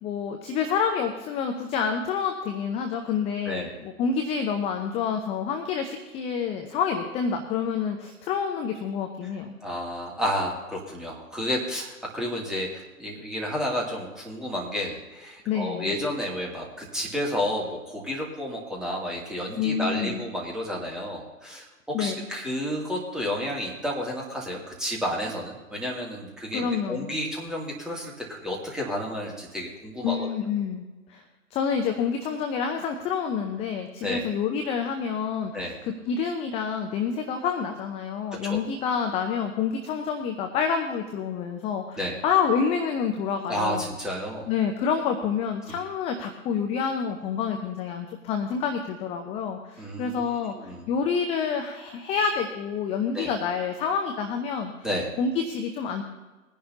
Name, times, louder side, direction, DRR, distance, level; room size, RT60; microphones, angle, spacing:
voice 1, 0.0-9.5 15.5-15.9 19.6-20.2 21.9-22.3 26.5-27.1 30.0-30.8 31.1-31.2 31.5-35.5 35.8-43.9 44.5-54.7 55.2-56.0, left 6 dB, 15° left, 5 dB, 0.6 m, -28 dB
voice 2, 3.4-3.8 9.6-30.3 34.0-34.2 35.5-35.8 38.4-38.6 42.0-42.2 43.5-44.5 45.7-45.8 49.8-50.8 53.1-53.3 54.8-55.1, equal, ahead, -3 dB, 2.5 m, -31 dB
21.0 x 10.5 x 2.8 m, 1.2 s
figure-of-eight pair, 115°, 43 cm